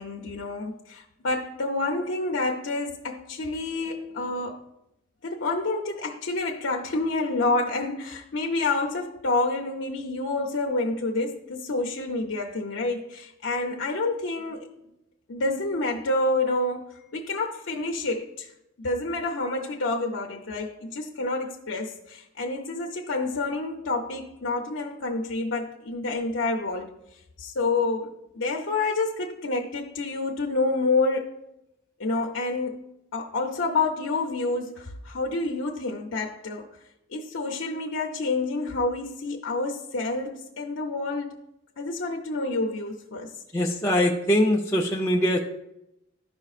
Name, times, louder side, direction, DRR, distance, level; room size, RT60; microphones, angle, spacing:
voice 1, 0.0-4.6 5.2-14.7 15.3-18.5 18.8-26.9 27.4-31.4 32.0-32.9 33.1-36.7 37.1-41.3 41.8-43.3, left 3 dB, 80° left, 0 dB, 0.6 m, -28 dB
voice 2, 43.5-45.4, equal, 15° left, -2 dB, 0.4 m, -22 dB
12.5 x 5.2 x 2.4 m, 0.87 s
head